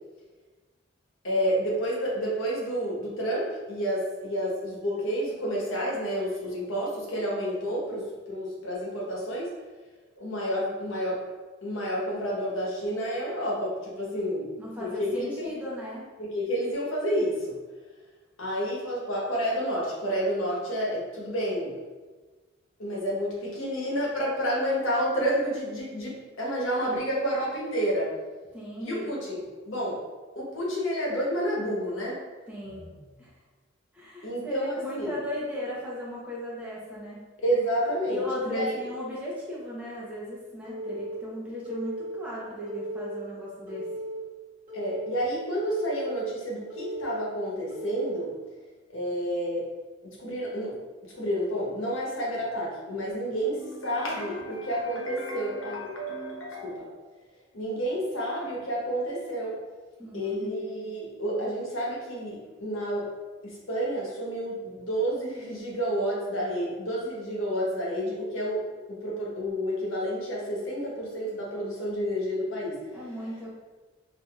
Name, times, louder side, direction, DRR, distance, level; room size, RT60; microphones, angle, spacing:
voice 1, 1.2-9.5 10.2-11.2 11.6-14.5 14.8-15.5 16.2-17.6 18.4-21.7 22.8-28.2 28.8-30.0 30.3-32.2 32.8-32.9 34.2-35.1 37.4-38.7 44.7-48.3 48.9-49.6 50.0-50.8 51.1-56.9 57.5-59.6 60.1-63.1 63.4-72.9, equal, 75° left, -4 dB, 1.1 m, -30 dB
voice 2, 14.6-16.0 28.5-29.1 32.5-32.9 33.2-33.3 33.9-37.2 38.1-43.9 60.0-60.5 72.9-73.6, left 1 dB, 5° right, -7 dB, 0.7 m, -36 dB
Telephone, 40.6-41.2 41.6-42.2 42.7-43.2 43.7-44.2 44.7-45.2 45.7-46.2 46.7-47.2 47.7-48.2, right 1 dB, 35° right, 1.2 m, -36 dB
4.7 x 2.8 x 2.4 m, 1.3 s
head